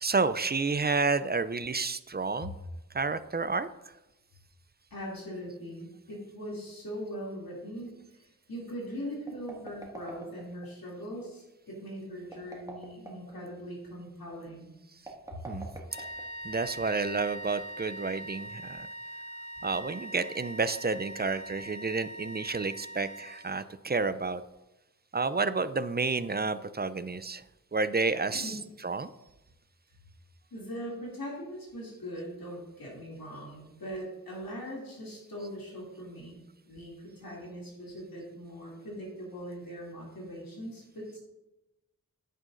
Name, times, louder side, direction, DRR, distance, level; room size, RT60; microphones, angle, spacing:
voice 1, 0.0-2.5 2.9-3.7 15.5-15.7 16.0-16.1 16.4-18.9 19.6-24.4 25.1-27.4 27.7-29.1 35.4-35.5, right 4 dB, 30° right, 13 dB, 0.4 m, -30 dB
voice 2, 4.9-14.7 15.3-15.6 28.3-28.6 30.5-41.2, equal, 85° left, -5 dB, 2.6 m, -41 dB
sound 1, 9.2-10.7 12.2-13.4 15.0-16.5, right 2 dB, 10° right, 1.8 m, -45 dB
sound 2, 15.9-23.8, equal, 35° left, 1.4 m, -42 dB
10.5 x 9.1 x 2.5 m, 0.97 s
wide cardioid pair, 70°, 35 cm